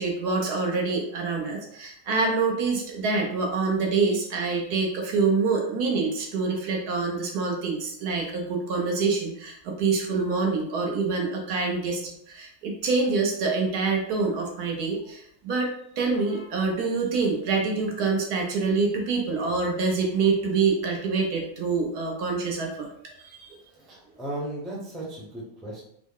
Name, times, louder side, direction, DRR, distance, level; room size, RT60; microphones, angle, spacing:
voice 1, 0.0-12.0 12.3-15.7 16.0-22.9 23.2-23.5, right 4 dB, 75° right, 1 dB, 1.2 m, -26 dB
voice 2, 23.7-25.8, right 1 dB, ahead, -5 dB, 0.6 m, -36 dB
3.4 x 2.1 x 3.6 m, 0.68 s
omnidirectional pair, 1.7 m